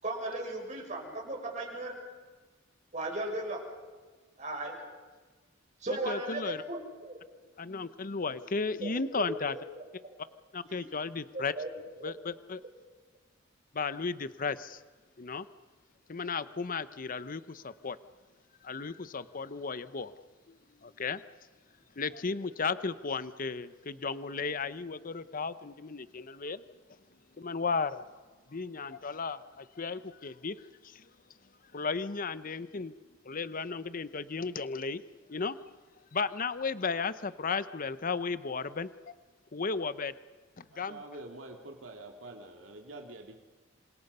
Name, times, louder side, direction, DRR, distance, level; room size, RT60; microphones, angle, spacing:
voice 1, 0.0-2.0 2.9-3.6 4.4-4.8 5.8-7.2 8.8-9.8 10.8-10.9 11.6-11.7 12.0-12.1, right 2 dB, 40° right, -1 dB, 6.5 m, -36 dB
voice 2, 6.1-6.6 7.6-9.5 10.5-11.5 12.0-12.6 13.7-14.8 15.2-15.5 16.1-18.0 18.6-20.1 20.5-20.6 20.8-21.2 22.0-26.6 27.4-28.1 28.5-30.6 30.8-31.1 31.7-32.9 33.2-35.0 35.3-35.6 36.1-39.1 39.5-40.1 40.6-41.0, left 4 dB, 45° left, 14 dB, 0.8 m, -34 dB
voice 3, 40.7-43.4, right 2 dB, 75° right, 2 dB, 2.4 m, -46 dB
28.0 x 26.5 x 5.5 m, 1.3 s
head